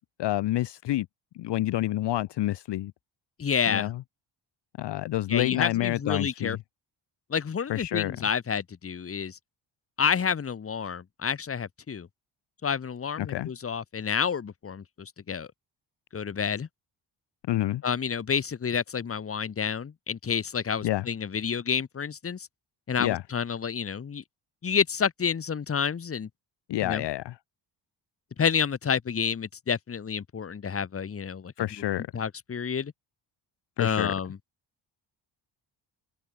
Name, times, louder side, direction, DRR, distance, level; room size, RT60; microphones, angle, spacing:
voice 1, 0.2-1.1 1.3-2.9 3.7-4.0 4.8-6.6 7.7-8.1 13.2-13.5 17.5-17.8 20.8-21.1 23.0-23.2 26.7-27.4 31.6-32.2 33.8-34.1, left 14 dB, 65° left, 0.7 m, -28 dB
voice 2, 3.4-3.9 5.3-6.6 7.3-9.4 10.0-12.1 12.6-15.5 16.1-16.7 17.8-22.5 22.9-24.2 24.6-26.3 26.8-27.0 28.4-31.5 32.1-32.9 33.8-34.4, left 6 dB, 30° left, 1.3 m, -29 dB
wide cardioid pair, 155°, 45 cm